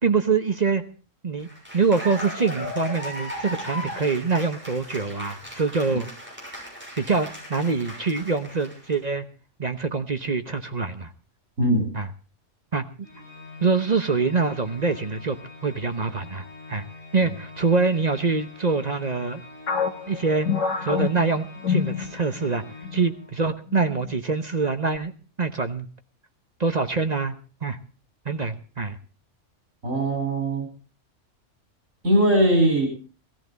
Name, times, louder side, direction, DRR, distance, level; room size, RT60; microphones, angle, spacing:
voice 1, 0.0-0.8 1.2-1.5 1.7-6.1 7.0-9.2 9.6-11.1 11.9-12.1 12.7-12.8 13.6-15.4 15.6-16.8 17.1-19.4 20.1-20.5 20.8-22.6 22.9-25.1 25.4-25.9 26.6-27.8 28.2-29.0, right 4 dB, 35° right, 8 dB, 1.0 m, -25 dB
Cheering / Applause, 1.4-8.9, left 1 dB, 10° right, 6.7 m, -37 dB
voice 2, 11.6-11.9 29.8-30.7 32.0-32.9, right 1 dB, 85° right, 3 dB, 5.2 m, -20 dB
Organ, 13.0-23.6, left 2 dB, 5° left, 7.4 m, -44 dB
sound 1, 19.7-22.5 22.8-23.1 23.7-24.2, left 6 dB, 70° left, 1.8 m, -27 dB
18.5 x 14.0 x 4.0 m, 0.38 s
omnidirectional pair, 1.3 m